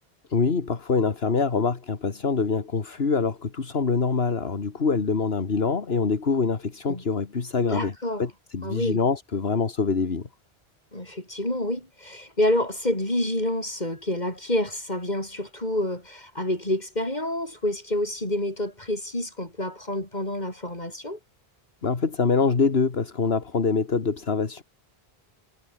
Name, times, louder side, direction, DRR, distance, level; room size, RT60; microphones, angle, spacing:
voice 1, 0.3-7.9 8.2-10.3 21.8-24.6, left 4 dB, 70° left, 2.1 m, -25 dB
voice 2, 7.7-8.3 8.6-9.0 10.9-21.2, left 1 dB, 45° left, 7.5 m, -28 dB
omnidirectional pair, 1.1 m